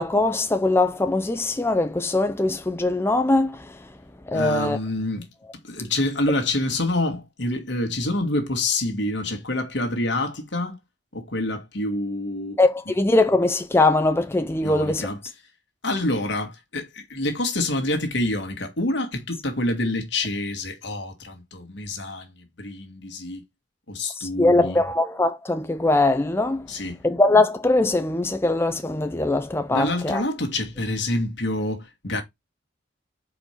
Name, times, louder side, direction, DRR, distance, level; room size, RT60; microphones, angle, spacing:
voice 1, 0.0-3.6 4.3-4.8 12.6-15.0 24.2-26.6 27.0-30.2, left 2 dB, 15° left, 0.4 m, -21 dB
voice 2, 4.3-5.3 5.6-10.8 11.1-12.6 12.9-13.0 14.6-15.2 15.8-23.4 23.9-24.8 26.7-27.0 29.7-32.2, left 2 dB, 65° left, 1.8 m, -27 dB
4.8 x 4.4 x 5.0 m
head